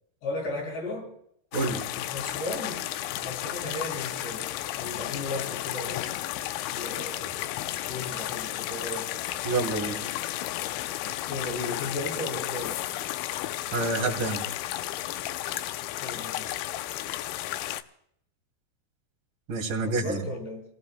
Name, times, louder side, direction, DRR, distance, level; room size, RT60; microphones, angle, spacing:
voice 1, 0.2-1.1 2.0-2.8 3.1-4.5 4.8-6.1 6.7-7.5 7.9-9.1 11.3-12.8 16.0-16.5 19.8-20.7, left 2 dB, 60° left, -1 dB, 8.4 m, -35 dB
sound 1, 1.5-17.8, left 14 dB, 80° left, 3.0 m, -33 dB
voice 2, 1.5-1.8 9.4-10.0 13.7-14.4 19.5-20.2, right 3 dB, 45° right, 1 dB, 3.7 m, -28 dB
30.0 x 18.5 x 2.2 m, 0.71 s
omnidirectional pair, 5.6 m